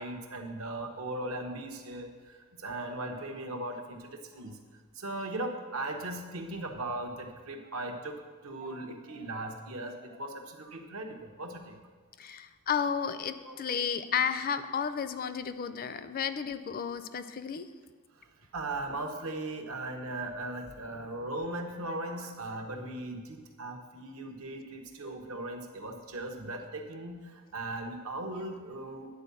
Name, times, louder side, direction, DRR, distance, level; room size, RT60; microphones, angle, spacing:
voice 1, 0.0-4.6 4.9-8.2 8.4-11.8 13.4-13.8 18.5-29.1, right 2 dB, 75° right, 4 dB, 1.0 m, -38 dB
voice 2, 12.2-17.7, left 7 dB, 45° left, 12 dB, 0.4 m, -32 dB
9.7 x 4.6 x 6.9 m, 1.4 s
head